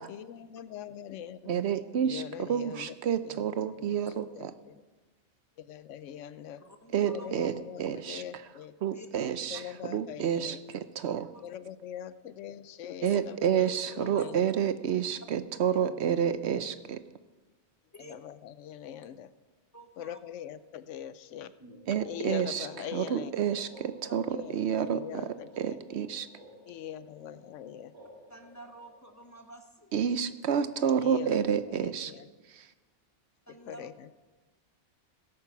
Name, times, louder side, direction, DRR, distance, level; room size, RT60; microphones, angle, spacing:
voice 1, 0.1-1.6 2.0-2.9 3.2-3.4 4.3-4.8 5.6-6.6 7.1-8.7 9.3-10.6 11.4-13.7 13.9-14.4 15.7-15.8 16.5-16.7 18.0-19.3 20.0-21.5 22.0-23.6 24.3-25.8 26.7-27.9 31.0-31.4 31.7-32.3 33.5-34.1, left 10 dB, 80° left, 15 dB, 0.9 m, -42 dB
voice 2, 1.5-4.5 6.9-8.4 8.8-11.3 13.0-17.0 21.9-26.3 29.9-32.1 32.4-32.7, right 8 dB, 70° right, 12 dB, 0.9 m, -30 dB
voice 3, 6.6-7.3 8.9-9.1 11.3-11.4 13.6-14.3 17.9-18.1 19.7-20.2 24.1-24.2 28.3-29.9 31.0-31.1 33.5-33.9, right 1 dB, 15° left, 5 dB, 1.1 m, -49 dB
sound 1, 21.6-29.3, equal, 20° right, 2.7 m, -52 dB
16.5 x 8.7 x 5.9 m, 1.3 s
omnidirectional pair, 1.2 m